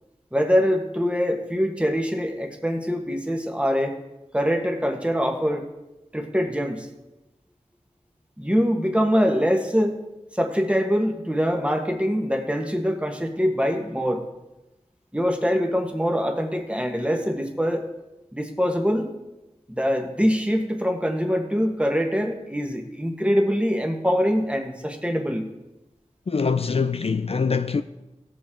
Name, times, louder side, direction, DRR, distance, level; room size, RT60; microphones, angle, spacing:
voice 1, 0.3-4.0 4.3-5.6 6.1-6.9 8.4-10.0 10.3-14.2 15.1-17.9 18.3-19.1 19.7-25.5, equal, 10° right, 1.5 m, -24 dB
voice 2, 26.3-27.8, left 5 dB, 55° left, 0.4 m, -23 dB
17.0 x 7.0 x 3.8 m
wide cardioid pair, 40°, 12 cm